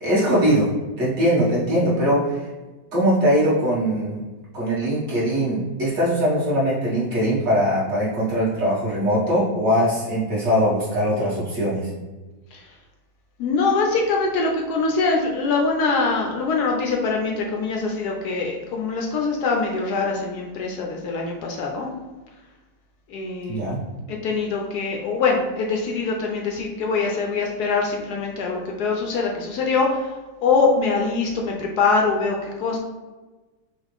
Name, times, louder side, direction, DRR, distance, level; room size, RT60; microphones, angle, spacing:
voice 1, 0.0-0.7 1.0-2.4 2.9-4.2 4.5-11.9 23.5-23.8, equal, 40° right, -8 dB, 1.8 m, -21 dB
voice 2, 13.4-21.9 23.1-23.7 24.1-30.1 30.4-32.8, left 4 dB, 75° left, 0 dB, 1.0 m, -23 dB
5.7 x 2.4 x 3.4 m, 1.2 s
omnidirectional pair, 2.1 m